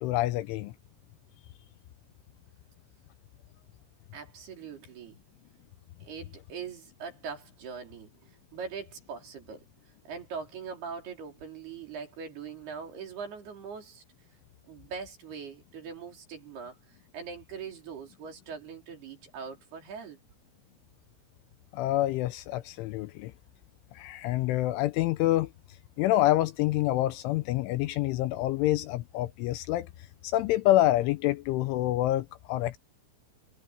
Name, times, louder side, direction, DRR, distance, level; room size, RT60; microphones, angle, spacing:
voice 1, 0.0-0.7 21.7-23.3 24.0-25.5 26.0-29.9 30.2-32.8, left 15 dB, 80° left, 3.0 m, -27 dB
voice 2, 4.1-5.2 6.0-9.7 10.1-14.0 14.7-20.2, right 6 dB, 50° right, 5.7 m, -41 dB
omnidirectional pair, 5.9 m